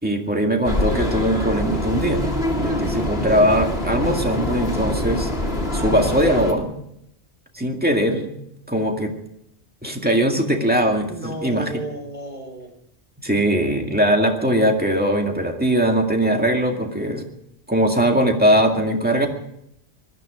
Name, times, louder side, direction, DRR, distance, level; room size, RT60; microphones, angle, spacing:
voice 1, 0.0-2.2 2.6-5.3 5.7-6.7 7.5-8.3 8.7-9.1 9.8-11.7 13.2-17.3 17.7-19.3, equal, 10° right, 2 dB, 2.1 m, -20 dB
sound 1, 0.6-6.5, left 1 dB, 60° left, 2.4 m, -24 dB
voice 2, 2.8-3.1 11.2-12.7, right 2 dB, 45° right, 2 dB, 4.4 m, -34 dB
20.0 x 13.5 x 5.1 m, 0.77 s
omnidirectional pair, 1.1 m